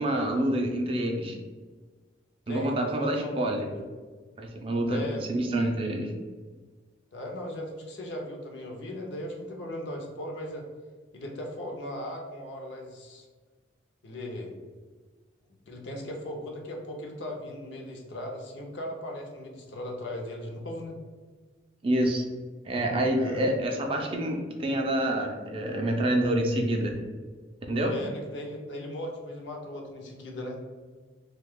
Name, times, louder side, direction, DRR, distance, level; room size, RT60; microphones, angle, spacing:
voice 1, 0.0-1.4 2.5-3.7 4.4-6.1 21.8-22.2 22.7-26.9 27.7-27.9, right 1 dB, 30° right, 2 dB, 0.3 m, -27 dB
voice 2, 2.5-3.4 3.7-3.8 4.9-5.2 7.1-10.7 11.1-13.3 14.0-14.5 15.7-21.0 23.1-23.5 27.8-30.6, left 1 dB, 75° left, 1 dB, 0.6 m, -38 dB
2.7 x 2.3 x 3.5 m, 1.4 s
head